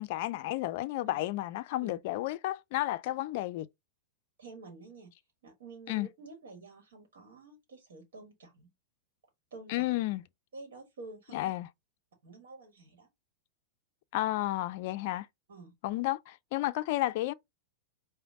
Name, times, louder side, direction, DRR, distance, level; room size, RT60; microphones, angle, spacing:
voice 1, 0.0-3.7 5.9-6.1 9.7-10.2 11.3-11.7 14.1-15.3 15.8-17.3, left 16 dB, 55° left, 0.4 m, -32 dB
voice 2, 4.4-5.1 5.4-8.7 9.5-9.9 10.5-11.5 12.2-13.1 15.5-15.7, right 3 dB, 65° right, 1.3 m, -49 dB
5.0 x 2.2 x 3.5 m
figure-of-eight pair, 95°, 0 cm